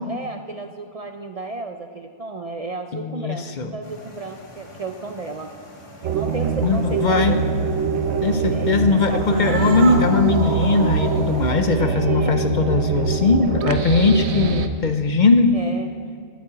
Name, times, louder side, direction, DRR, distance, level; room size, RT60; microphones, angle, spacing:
voice 1, 0.0-3.5 3.7-5.5 6.0-7.4 8.5-9.7 11.7-12.4 15.5-15.9, right 3 dB, 45° right, 6 dB, 0.5 m, -33 dB
voice 2, 2.9-3.7 6.6-7.4 8.2-15.5, left 4 dB, 55° left, 8 dB, 0.7 m, -19 dB
sound 1, 3.8-11.5, left 2 dB, 30° left, 1.5 m, -43 dB
sound 2, 6.0-14.7, right 5 dB, 85° right, 1.0 m, -23 dB
Cat, 9.1-14.7, right 2 dB, 70° right, 1.6 m, -33 dB
9.4 x 8.5 x 8.6 m, 2.1 s
omnidirectional pair, 1.1 m